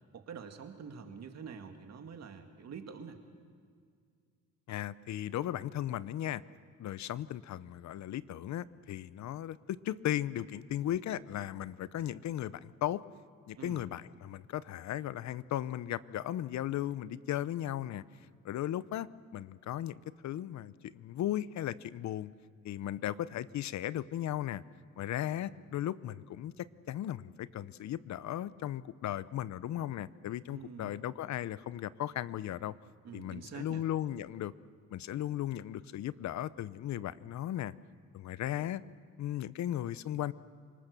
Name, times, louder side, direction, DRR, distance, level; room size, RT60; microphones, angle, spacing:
voice 1, 0.1-3.2 13.6-13.8 30.5-31.0 33.0-33.8, right 6 dB, 60° right, 5 dB, 2.3 m, -46 dB
voice 2, 4.7-6.4 6.8-13.0 13.5-18.0 18.4-19.9 20.2-22.3 22.6-24.6 25.0-32.7 33.1-34.5 34.9-37.7 38.1-38.8 39.2-40.3, left 12 dB, 65° left, 18 dB, 0.7 m, -36 dB
28.0 x 19.0 x 6.8 m, 2.1 s
cardioid pair, 90°, 30 cm